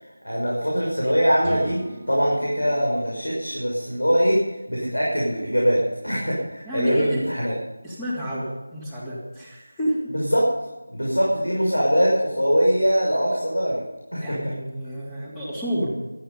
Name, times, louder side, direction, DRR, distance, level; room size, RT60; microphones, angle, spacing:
voice 1, 0.2-1.8 2.1-7.5 10.1-10.5 10.9-13.8 14.1-14.4, equal, 90° left, -3 dB, 6.3 m, -22 dB
sound 1, 1.4-5.2, right 2 dB, 15° right, 2.6 m, -40 dB
voice 2, 6.6-7.2 7.8-10.1 14.2-16.0, equal, 5° left, -9 dB, 3.0 m, -29 dB
18.0 x 13.0 x 5.5 m, 1.1 s
figure-of-eight pair, 165°, 0 cm